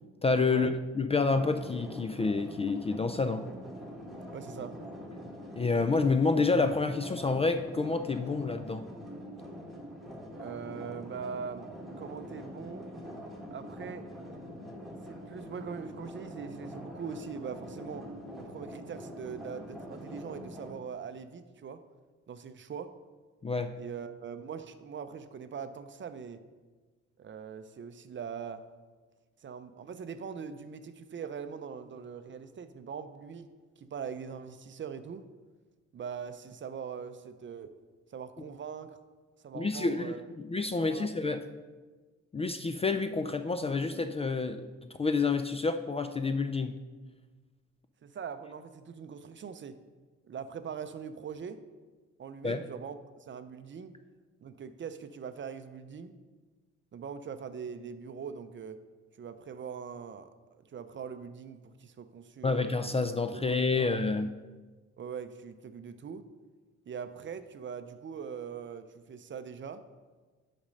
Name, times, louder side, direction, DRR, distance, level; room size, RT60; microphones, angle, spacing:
voice 1, 0.2-0.7 0.9-3.4 5.5-8.9 23.4-23.7 39.5-41.4 42.3-46.8 52.4-52.6 62.4-64.3, left 4 dB, 20° left, 8 dB, 0.3 m, -28 dB
sound 1, 1.3-20.7, equal, ahead, 1.6 m, -44 dB
voice 2, 4.3-4.8 10.3-11.7 12.0-12.9 13.5-14.1 15.1-18.1 18.4-21.8 22.3-23.0 23.8-26.4 27.2-28.6 29.4-33.5 33.8-35.2 35.9-37.7 38.1-39.0 39.4-40.3 40.8-41.3 48.0-49.8 50.3-51.6 52.2-53.9 54.4-56.2 56.9-58.8 59.2-62.7 63.3-63.9 65.0-66.3 66.9-69.8, right 6 dB, 40° right, 10 dB, 0.6 m, -42 dB
7.2 x 5.1 x 5.2 m, 1.3 s
cardioid pair, 90°, 30 cm